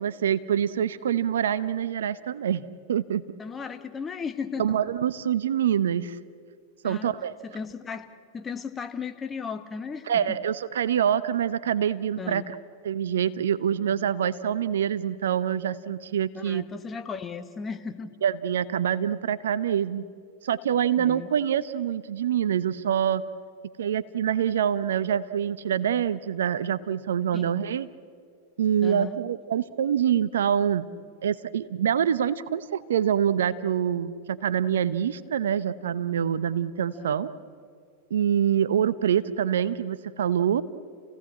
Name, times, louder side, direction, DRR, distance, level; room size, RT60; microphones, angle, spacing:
voice 1, 0.0-3.2 4.6-6.2 6.8-7.3 10.1-12.5 12.8-16.6 18.2-20.0 20.4-23.2 23.8-27.9 28.6-30.8 31.2-37.3 38.1-40.6, right 9 dB, 75° right, 15 dB, 0.9 m, -25 dB
voice 2, 3.4-4.8 6.8-7.1 7.4-10.4 12.2-12.5 16.3-18.1 20.9-21.3 27.3-27.5 28.8-29.2 36.9-37.2, left 5 dB, 20° left, 8 dB, 1.7 m, -36 dB
30.0 x 17.0 x 8.7 m, 2.2 s
hypercardioid pair, 95°, 0 cm